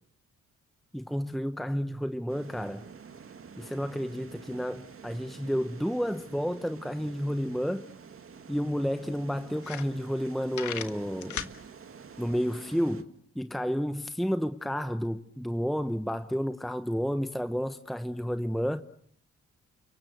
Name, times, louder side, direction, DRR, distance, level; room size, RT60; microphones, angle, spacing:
voice 1, 0.9-2.8 3.6-7.9 8.5-11.5 12.2-18.8, equal, ahead, 1.1 m, -31 dB
sound 1, 2.3-13.0, right 6 dB, 45° right, 2.3 m, -49 dB
sound 2, 9.6-10.2 10.5-11.6, left 10 dB, 75° left, 1.8 m, -36 dB
30.0 x 24.0 x 8.0 m
cardioid pair, 85°, 30 cm